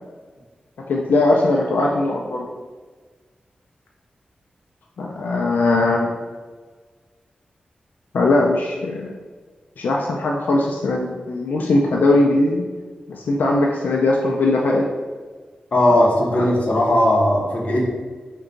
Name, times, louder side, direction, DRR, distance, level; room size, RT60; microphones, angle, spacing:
voice 1, 0.9-2.5 5.0-6.2 8.1-9.1 9.8-12.6 13.1-14.8 16.4-16.5, left 2 dB, 90° left, -1 dB, 0.4 m, -19 dB
voice 2, 15.7-17.9, left 1 dB, 50° left, -3 dB, 0.8 m, -17 dB
3.7 x 2.2 x 3.8 m, 1.4 s
wide cardioid pair, 155°, 3 cm